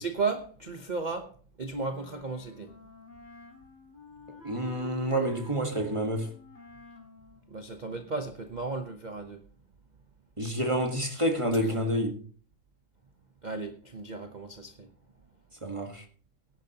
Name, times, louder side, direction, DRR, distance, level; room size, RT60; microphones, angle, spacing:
voice 1, 0.0-1.3 1.6-2.7 7.5-9.4 11.6-11.8 13.4-14.9, right 4 dB, 40° right, 0.7 m, -34 dB
Wind instrument woodwind instrument, 1.8-8.4, left 5 dB, 90° left, 4.2 m, -50 dB
voice 2, 4.4-6.3 10.4-12.2 15.6-16.0, right 1 dB, 20° right, 1.3 m, -28 dB
18.0 x 10.5 x 2.9 m
omnidirectional pair, 2.0 m